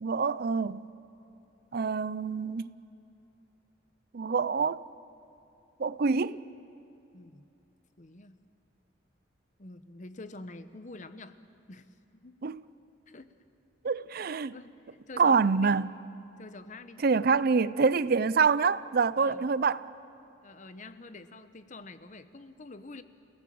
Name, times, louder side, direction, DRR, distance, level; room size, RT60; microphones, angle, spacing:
voice 1, 0.0-0.8 1.7-2.7 4.1-4.8 5.8-6.4 12.4-12.6 13.8-14.5 15.2-15.9 17.0-19.9, right 5 dB, 50° right, 0.5 m, -26 dB
voice 2, 7.1-7.5 8.0-8.4 9.6-11.4 11.7-11.9 12.1-12.4 13.1-13.3 14.5-14.8 15.1-15.7 16.4-17.0 19.2-19.5 20.4-23.0, left 2 dB, 40° left, 1.0 m, -46 dB
29.5 x 17.5 x 7.7 m
head